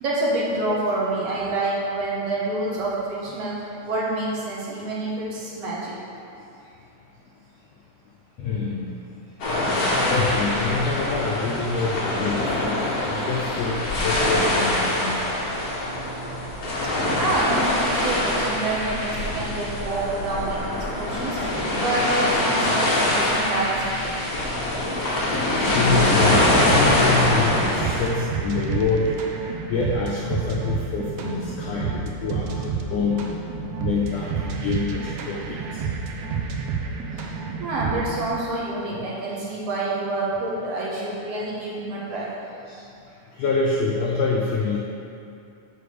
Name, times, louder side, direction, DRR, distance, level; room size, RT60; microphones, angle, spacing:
voice 1, 0.0-3.6 3.8-5.9 17.2-21.4 21.8-24.2 31.9-32.0 32.3-32.4 32.9-33.0 37.6-42.3, right 2 dB, 60° right, -6 dB, 2.0 m, -27 dB
voice 2, 8.4-8.8 10.1-12.7 13.1-15.1 25.7-29.1 29.7-33.2 33.8-34.3 34.6-35.6 42.7-42.8 43.4-44.8, left 4 dB, 85° left, -3 dB, 1.5 m, -26 dB
sound 1, 9.4-28.0, left 1 dB, 60° left, 0.9 m, -23 dB
sound 2, 26.3-38.3, right 5 dB, 75° right, 1.5 m, -30 dB
6.8 x 4.8 x 6.7 m, 2.7 s
omnidirectional pair, 3.6 m